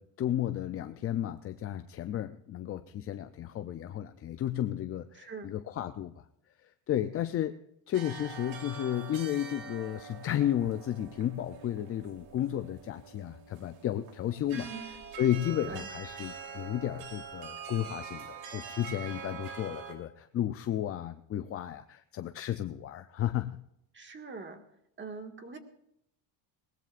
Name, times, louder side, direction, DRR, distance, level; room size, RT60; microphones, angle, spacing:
voice 1, 0.0-6.1 6.6-7.6 7.9-14.7 15.2-23.6, left 11 dB, 30° left, 9 dB, 0.4 m, -33 dB
voice 2, 5.2-5.5 14.5-14.9 15.7-15.9 23.9-24.6 25.0-25.6, right 4 dB, 25° right, 5 dB, 1.8 m, -43 dB
sound 1, 7.9-19.9, right 6 dB, 85° right, 3.4 m, -45 dB
21.0 x 19.0 x 2.5 m, 0.78 s
cardioid pair, 155°, 46 cm